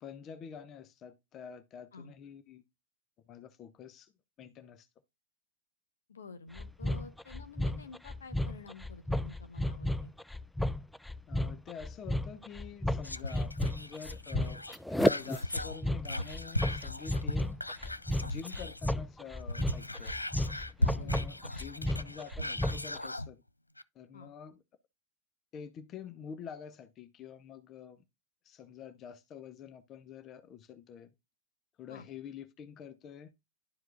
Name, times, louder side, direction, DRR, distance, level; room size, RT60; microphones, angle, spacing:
voice 1, 0.0-2.6 3.3-4.1 4.4-4.9 11.3-14.6 15.0-17.6 18.2-20.2 20.8-23.4 23.9-24.6 25.5-28.0 28.4-31.1 31.8-33.3, left 7 dB, 30° left, 0.7 m, -47 dB
voice 2, 6.1-10.1 20.9-21.1 24.1-24.3 31.9-32.1, left 4 dB, 70° left, 1.0 m, -50 dB
sound 1, 6.6-23.0, left 1 dB, 5° left, 0.3 m, -33 dB
Whispering, 13.0-19.0 19.4-23.3 23.8-23.9, left 1 dB, 85° left, 0.3 m, -37 dB
11.5 x 4.6 x 2.4 m
figure-of-eight pair, 90°, 0 cm